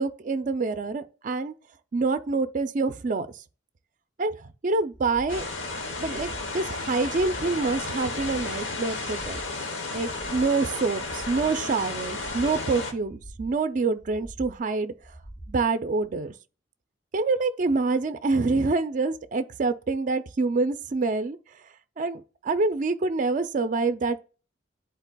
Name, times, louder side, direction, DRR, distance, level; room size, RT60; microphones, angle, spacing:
voice 1, 0.0-1.5 1.9-3.3 4.2-5.5 6.0-9.4 9.9-14.9 15.5-16.3 17.1-21.4 22.0-24.2, right 3 dB, 45° right, 0.4 m, -26 dB
sound 1, 4.9-5.5 5.9-6.5 6.9-7.5 7.9-8.5 8.9-9.5 9.9-10.5 10.9-11.5 12.0-12.5 13.0-13.6 14.0-14.6 15.0-15.6 16.0-16.1, right 1 dB, 25° left, 1.2 m, -44 dB
sound 2, 5.3-12.9, left 3 dB, 85° left, 0.9 m, -33 dB
10.5 x 4.0 x 2.2 m
head